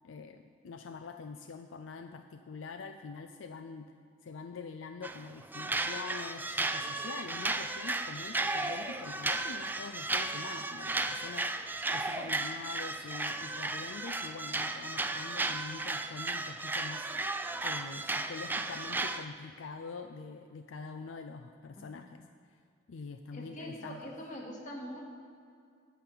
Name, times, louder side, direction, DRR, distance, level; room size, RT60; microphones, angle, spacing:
voice 1, 0.0-3.9 4.2-17.3 17.6-22.2 22.5-22.6 22.9-24.1, left 4 dB, 80° left, 7 dB, 0.4 m, -45 dB
sound 1, 5.0-5.2 5.5-19.2, right 2 dB, 10° right, 0.4 m, -34 dB
voice 2, 21.8-22.2 23.3-25.0, equal, 40° left, -1 dB, 1.9 m, -43 dB
9.2 x 6.1 x 8.4 m, 2.3 s
head